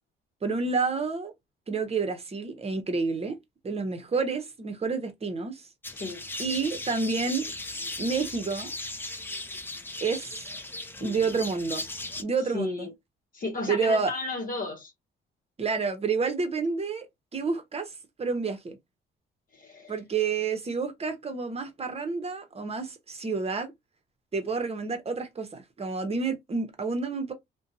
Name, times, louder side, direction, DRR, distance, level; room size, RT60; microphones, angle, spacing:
voice 1, 0.4-1.3 1.7-3.4 3.6-5.7 6.4-7.5 8.0-8.7 10.0-10.4 11.0-11.9 12.2-12.9 13.7-14.1 15.6-17.1 17.3-17.9 18.2-18.8 19.9-23.7 24.3-27.3, right 4 dB, 30° right, 0.8 m, -29 dB
sound 1, 5.8-12.2, left 2 dB, 10° left, 0.5 m, -37 dB
voice 2, 5.9-6.2 11.0-11.3 12.5-12.9 13.3-14.9 19.5-20.0, left 2 dB, 45° left, 0.9 m, -34 dB
2.6 x 2.2 x 2.6 m
cardioid pair, 90°, 20 cm